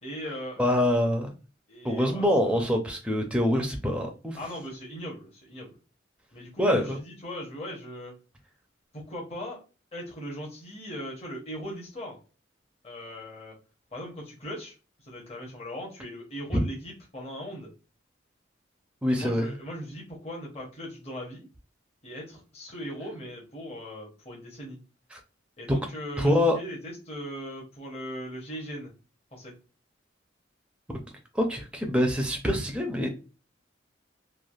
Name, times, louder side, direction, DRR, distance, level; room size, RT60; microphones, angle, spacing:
voice 1, 0.0-0.7 1.7-2.7 4.4-5.8 6.3-8.1 8.9-9.6 9.9-12.2 12.8-13.5 13.9-17.7 19.1-21.5 22.0-24.8 25.6-28.9 29.3-29.5, equal, 30° left, -2 dB, 0.8 m, -39 dB
voice 2, 0.6-1.3 1.8-4.4 6.6-7.0 19.0-19.5 25.1-25.2 25.7-25.8 26.2-26.6 31.3-33.1, left 1 dB, 5° right, 2 dB, 0.5 m, -25 dB
3.2 x 2.4 x 2.3 m, 0.32 s
head